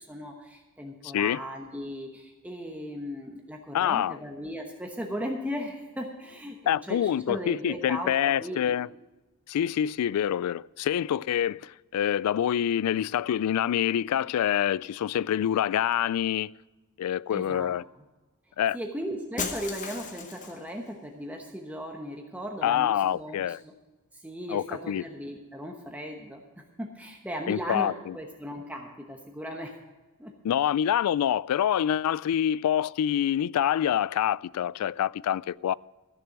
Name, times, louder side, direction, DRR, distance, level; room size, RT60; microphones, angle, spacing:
voice 1, 0.0-8.6 17.3-17.7 18.7-23.7 24.2-26.4 26.8-29.7 30.2-30.3, equal, 5° right, 1.0 m, -37 dB
voice 2, 1.0-1.4 3.7-4.2 6.7-8.9 9.5-16.5 17.0-17.8 18.6-18.8 22.6-23.6 24.5-25.0 27.5-28.2 30.4-35.7, left 10 dB, 85° left, 0.3 m, -26 dB
Shatter, 19.4-20.7, left 4 dB, 35° left, 0.9 m, -35 dB
14.0 x 6.9 x 7.3 m
head